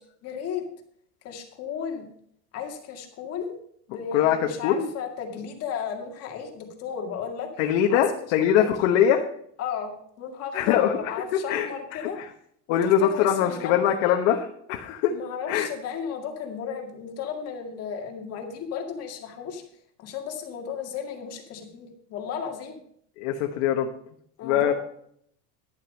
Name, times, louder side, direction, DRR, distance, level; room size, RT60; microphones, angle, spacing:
voice 1, 0.2-0.6 1.2-2.1 2.5-3.5 3.9-7.5 7.9-8.0 8.6-8.9 9.6-12.2 12.7-14.0 15.1-19.6 20.0-22.8 24.4-24.7, left 7 dB, 40° left, 3 dB, 2.0 m, -34 dB
voice 2, 4.1-4.9 7.6-9.2 10.5-12.3 12.7-15.2 15.5-15.7 23.2-23.9 24.4-24.7, left 9 dB, 65° left, 3 dB, 1.2 m, -23 dB
11.5 x 7.3 x 5.3 m, 0.66 s
supercardioid pair, 150°, 37 cm